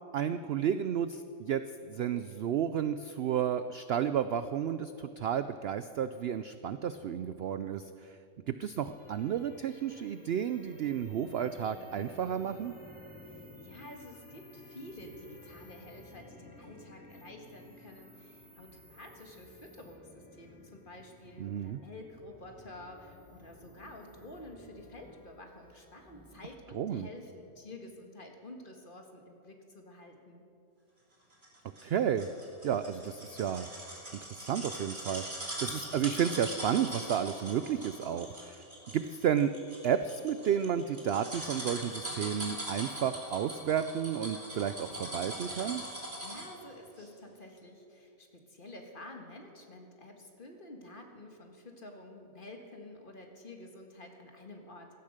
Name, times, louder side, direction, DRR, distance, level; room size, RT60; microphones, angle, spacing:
voice 1, 0.1-1.6 1.9-8.2 8.5-12.7 21.4-21.8 26.7-27.1 31.8-32.3 32.6-33.7 34.1-38.6 38.9-39.5 39.8-45.8, right 9 dB, 75° right, 11 dB, 0.5 m, -32 dB
sound 1, 8.8-26.4, left 1 dB, 5° right, 3.2 m, -54 dB
voice 2, 13.3-30.4 46.2-54.9, left 1 dB, 35° left, 3 dB, 1.8 m, -50 dB
sound 2, 31.4-46.6 47.0-47.1, right 1 dB, 30° right, 3.0 m, -41 dB
16.5 x 12.0 x 6.6 m, 2.7 s
omnidirectional pair, 1.6 m